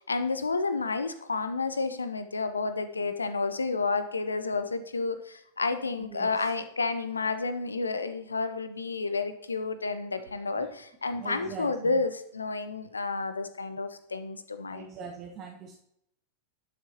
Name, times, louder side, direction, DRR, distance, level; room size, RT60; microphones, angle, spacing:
voice 1, 0.1-14.9, left 3 dB, 75° left, 11 dB, 0.7 m, -30 dB
voice 2, 6.0-6.5 10.5-10.7 11.1-12.0 14.7-15.7, right 6 dB, 35° right, 1 dB, 0.9 m, -42 dB
11.0 x 6.7 x 2.9 m, 0.74 s
figure-of-eight pair, 90°, 0 cm